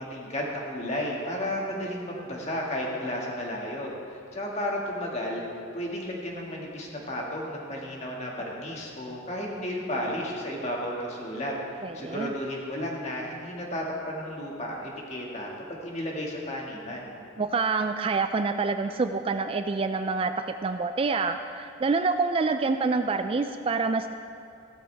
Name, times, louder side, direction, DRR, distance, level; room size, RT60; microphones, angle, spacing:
voice 1, 0.0-5.4 5.7-17.1, left 1 dB, 35° left, -2 dB, 2.0 m, -33 dB
voice 2, 11.8-12.3 17.4-24.1, right 4 dB, 30° right, 8 dB, 0.3 m, -27 dB
15.5 x 13.5 x 3.5 m, 2.5 s
head